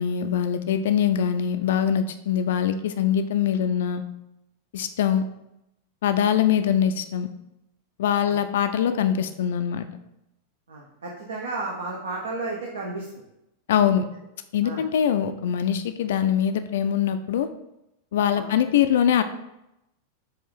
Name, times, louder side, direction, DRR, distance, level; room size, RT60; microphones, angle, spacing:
voice 1, 0.0-4.0 4.7-5.2 6.0-7.3 8.0-9.9 13.7-14.0 14.5-17.5 18.1-19.2, left 9 dB, 60° left, 10 dB, 0.3 m, -23 dB
voice 2, 10.7-13.2 14.6-14.8 18.3-18.5, right 3 dB, 65° right, -2 dB, 0.7 m, -33 dB
5.5 x 2.5 x 3.6 m, 0.86 s
figure-of-eight pair, 90°, 0 cm